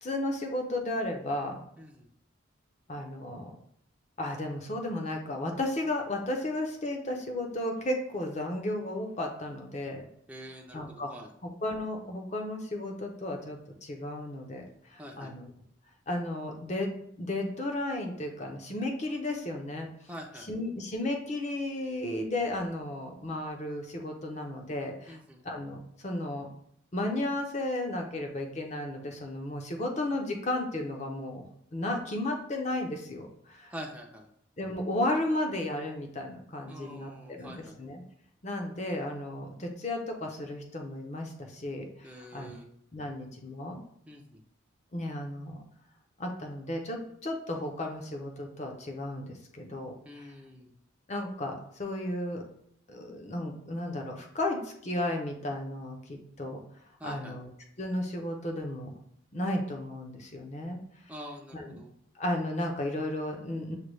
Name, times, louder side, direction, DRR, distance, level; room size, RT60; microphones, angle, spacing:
voice 1, 0.0-1.7 2.9-3.5 4.2-10.0 10.7-11.1 11.4-15.5 16.1-19.9 20.5-25.2 25.4-26.5 26.9-31.4 31.7-33.7 34.6-38.0 38.4-42.6 42.9-43.8 44.9-45.6 46.2-50.3 51.1-52.4 52.9-56.6 57.0-57.5 57.8-58.9 59.3-60.8 61.5-61.8 62.2-63.8, left 1 dB, 35° left, 3 dB, 0.6 m, -34 dB
voice 2, 1.8-2.1 10.3-11.3 15.0-15.4 20.1-20.5 25.1-25.4 33.7-34.3 36.7-37.8 42.0-42.7 44.1-44.4 50.0-50.7 57.0-57.4 61.1-61.9, equal, 5° right, 0 dB, 0.5 m, -45 dB
6.5 x 2.2 x 3.1 m, 0.70 s
head